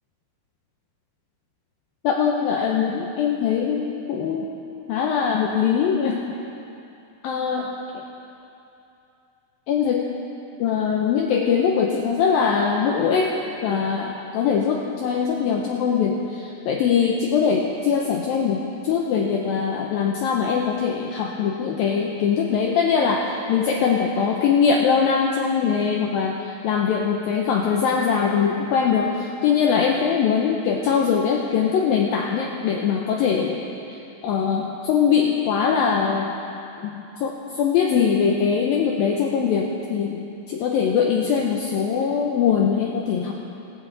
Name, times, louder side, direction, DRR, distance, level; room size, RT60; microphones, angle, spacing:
voice 1, 2.0-4.5 4.9-6.2 7.2-7.7 9.7-10.1 10.6-13.4 13.6-33.6 33.9-36.3 36.8-43.3, left 6 dB, 85° left, 0 dB, 2.0 m, -22 dB
19.0 x 16.5 x 4.0 m, 2.8 s
omnidirectional pair, 5.2 m